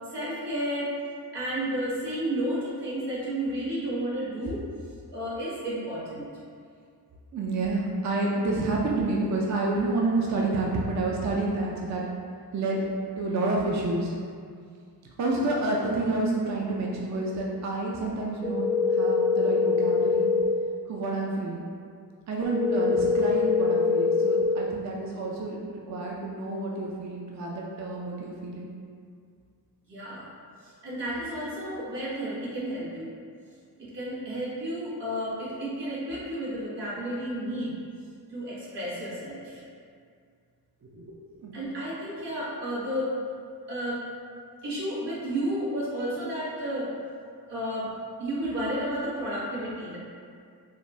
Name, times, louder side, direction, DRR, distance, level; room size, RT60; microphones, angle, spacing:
voice 1, 0.1-0.9 1.3-4.6 5.1-6.3 29.9-30.3 30.6-33.1 33.8-37.7 38.3-39.6 41.5-43.1 43.7-44.0 44.6-46.9 47.5-47.9 48.2-50.0, right 1 dB, 90° right, -9 dB, 1.2 m, -32 dB
voice 2, 7.3-12.0 12.5-12.8 13.1-14.1 15.2-20.3 20.9-21.6 22.3-28.7 40.8-41.1 41.3-41.6, right 2 dB, 45° right, -3 dB, 0.5 m, -29 dB
sound 1, 18.4-20.4 22.4-24.4, left 4 dB, 15° left, 0.3 m, -23 dB
4.9 x 2.1 x 2.7 m, 2.2 s
wide cardioid pair, 75°, 40 cm